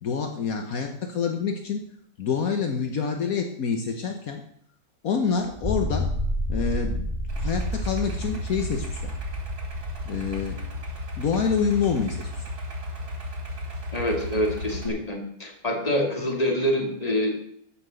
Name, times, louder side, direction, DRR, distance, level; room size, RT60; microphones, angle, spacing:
voice 1, 0.0-1.9 2.2-4.4 5.0-6.1 6.5-7.1 7.4-9.1 10.1-10.6 11.2-12.3, left 6 dB, 70° left, 4 dB, 1.5 m, -27 dB
sound 1, 5.5-12.0, equal, 15° right, 2.9 m, -31 dB
Idling, 7.3-14.9, left 1 dB, 85° right, 3.1 m, -34 dB
voice 2, 13.9-17.3, equal, 25° left, 1 dB, 2.6 m, -26 dB
13.5 x 5.9 x 7.7 m, 0.68 s
omnidirectional pair, 1.6 m